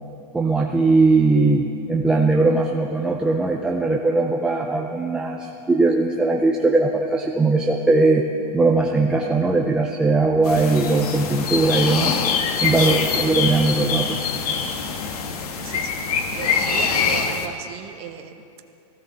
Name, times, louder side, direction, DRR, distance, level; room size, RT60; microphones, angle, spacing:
voice 1, 0.3-8.2 8.5-12.2 12.6-14.2, right 3 dB, 5° right, -1 dB, 0.4 m, -19 dB
sound 1, 10.4-17.5, left 6 dB, 90° left, 1.3 m, -24 dB
voice 2, 15.6-16.0 16.3-18.6, right 9 dB, 30° right, 5 dB, 1.0 m, -35 dB
18.0 x 15.5 x 3.9 m, 2.6 s
supercardioid pair, 165°, 19 cm